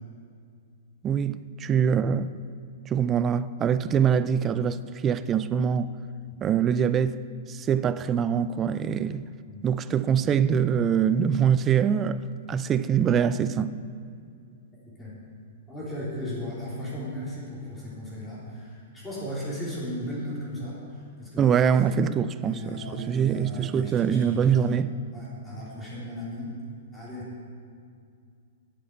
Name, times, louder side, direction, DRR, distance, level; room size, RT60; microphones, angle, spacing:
voice 1, 1.0-2.3 2.9-5.9 6.4-7.2 7.5-9.3 9.6-12.2 12.5-13.8 21.4-24.9, right 7 dB, 25° right, 0.4 m, -24 dB
voice 2, 14.8-15.1 15.7-21.8 22.4-24.7 25.1-26.5 26.9-27.3, left 1 dB, 10° left, 3.5 m, -36 dB
8.7 x 8.3 x 8.0 m
hypercardioid pair, 135°, 0 cm